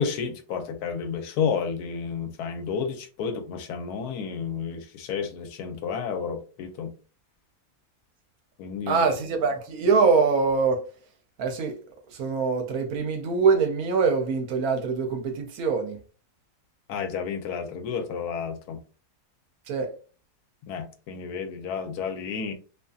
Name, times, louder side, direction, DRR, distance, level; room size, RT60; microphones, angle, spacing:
voice 1, 0.0-6.9 8.6-9.0 16.9-18.8 20.7-22.5, left 6 dB, 80° left, 1.1 m, -31 dB
voice 2, 8.9-10.9 11.4-11.8 12.1-16.0 19.7-20.0, right 5 dB, 70° right, 1.0 m, -24 dB
2.7 x 2.5 x 2.3 m
omnidirectional pair, 1.7 m